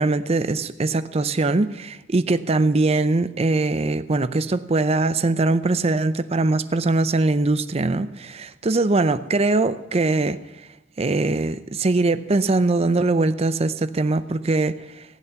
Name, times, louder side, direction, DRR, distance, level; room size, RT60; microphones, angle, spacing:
voice 1, 0.0-10.4 11.0-15.0, right 2 dB, 35° right, 0.5 m, -21 dB
15.5 x 8.3 x 6.9 m
head